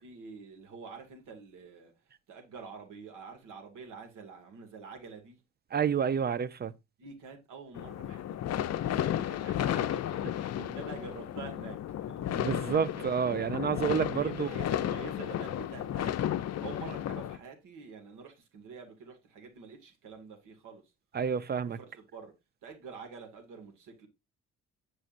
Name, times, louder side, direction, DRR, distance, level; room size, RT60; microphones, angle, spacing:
voice 1, 0.0-1.9 2.3-5.4 7.0-13.1 13.9-16.1 16.4-20.8 21.6-22.3 22.6-24.1, right 5 dB, 85° right, 2.2 m, -47 dB
voice 2, 5.7-6.7 12.3-14.5 21.1-21.8, right 7 dB, 35° right, 0.6 m, -29 dB
sound 1, 7.7-17.4, left 11 dB, 55° left, 0.6 m, -33 dB
7.9 x 6.3 x 2.5 m
cardioid pair, 90°, 30 cm